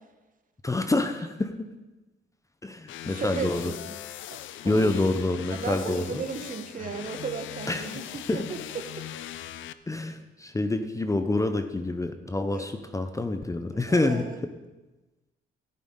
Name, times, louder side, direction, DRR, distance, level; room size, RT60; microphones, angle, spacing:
voice 1, 0.6-1.7 2.6-3.7 4.6-6.2 7.7-8.0 8.3-8.5 9.9-14.3, left 2 dB, 15° left, 8 dB, 0.7 m, -27 dB
sound 1, 2.9-9.7, left 12 dB, 75° left, 0.5 m, -40 dB
voice 2, 3.1-3.9 4.3-4.4 4.6-4.9 5.5-9.0 9.3-9.5 12.5-12.7 13.7-14.4, right 5 dB, 45° right, 7 dB, 1.1 m, -35 dB
13.0 x 10.5 x 3.8 m, 1.1 s
cardioid pair, 90°, 20 cm